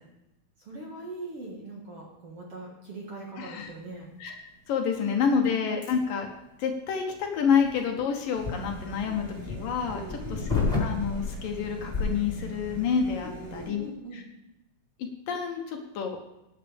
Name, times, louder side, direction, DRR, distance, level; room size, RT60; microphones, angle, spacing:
voice 1, 0.6-4.1 5.0-5.5 9.0-9.2 9.9-10.5 13.2-14.2, right 2 dB, 45° right, -2 dB, 2.2 m, -41 dB
voice 2, 3.4-3.7 4.2-4.3 4.7-6.3 6.6-10.4 10.8-13.8 15.0-16.2, left 6 dB, 70° left, 3 dB, 2.6 m, -28 dB
sound 1, 5.8-5.9 7.5-12.5, left 4 dB, 10° left, 4.2 m, -31 dB
sound 2, 8.4-13.7, right 2 dB, 80° right, 5.7 m, -42 dB
18.0 x 8.7 x 3.5 m, 0.91 s
omnidirectional pair, 4.5 m